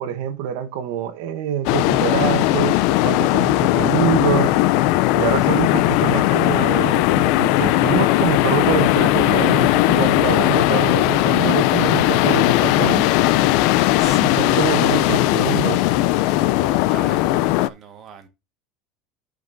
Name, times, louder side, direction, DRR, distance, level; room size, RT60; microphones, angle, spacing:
voice 1, 0.0-4.5 5.2-13.1 14.2-15.9, right 10 dB, 75° right, 1.1 m, -25 dB
sound 1, 1.6-17.7, left 16 dB, 60° left, 0.4 m, -18 dB
voice 2, 14.0-14.7 16.6-18.3, right 8 dB, 30° right, 1.4 m, -41 dB
14.0 x 5.2 x 2.6 m
cardioid pair, 160°, 0 cm